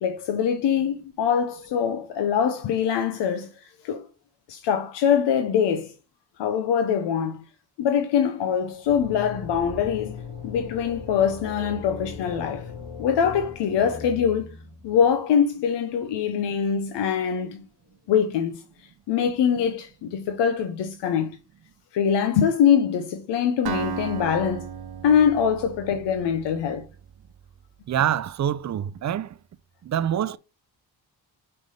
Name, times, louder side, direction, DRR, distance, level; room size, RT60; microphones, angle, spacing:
voice 1, 0.0-4.0 4.5-5.9 6.4-7.4 7.8-12.7 13.0-14.5 14.8-17.6 18.1-21.4 21.9-24.7 25.0-26.9, left 8 dB, 85° left, 0.8 m, -23 dB
sound 1, 8.8-14.9, left 4 dB, 70° left, 2.5 m, -38 dB
Acoustic guitar, 23.6-27.5, right 8 dB, 60° right, 0.9 m, -35 dB
voice 2, 27.9-29.4 29.8-30.4, right 10 dB, 45° right, 0.5 m, -25 dB
5.2 x 3.3 x 5.4 m
cardioid pair, 60°, 41 cm